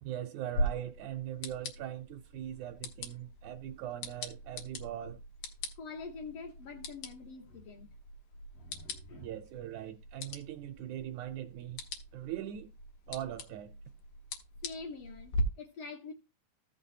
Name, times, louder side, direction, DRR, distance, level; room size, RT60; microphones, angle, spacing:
voice 1, 0.0-5.2 9.2-11.8 12.1-12.7 13.1-13.7, right 11 dB, 80° right, 1.8 m, -41 dB
sound 1, 0.5-15.4, equal, 90° left, 2.9 m, -41 dB
voice 2, 5.8-7.9 8.5-9.3 14.6-16.1, left 4 dB, 65° left, 1.6 m, -45 dB
14.5 x 5.9 x 2.7 m
omnidirectional pair, 3.7 m